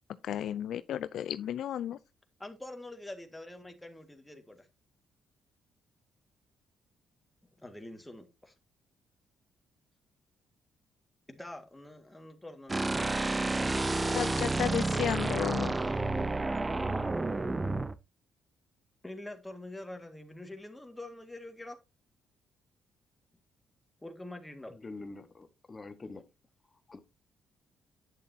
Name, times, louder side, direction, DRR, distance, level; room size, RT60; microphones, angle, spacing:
voice 1, 0.2-2.0 14.1-15.7, left 10 dB, 75° left, 0.4 m, -33 dB
voice 2, 2.4-4.7 7.6-8.5 11.3-14.6 19.0-21.8 24.0-24.7, left 1 dB, 10° left, 1.9 m, -46 dB
sound 1, 12.7-17.9, right 2 dB, 20° right, 0.7 m, -30 dB
voice 3, 24.7-26.3 26.9-27.0, left 3 dB, 30° left, 1.2 m, -45 dB
9.4 x 7.1 x 2.8 m
cardioid pair, 90°, 0 cm